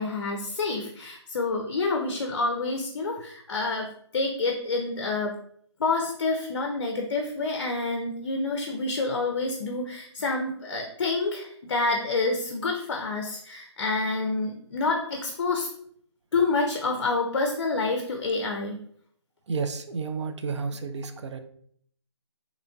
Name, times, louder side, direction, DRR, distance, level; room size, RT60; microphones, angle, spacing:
voice 1, 0.0-5.3 5.8-15.7 16.3-18.8, left 3 dB, 55° left, 2 dB, 0.4 m, -28 dB
voice 2, 19.5-21.4, right 4 dB, 70° right, 8 dB, 0.4 m, -31 dB
3.0 x 2.5 x 2.2 m, 0.63 s
hypercardioid pair, 160°, 15 cm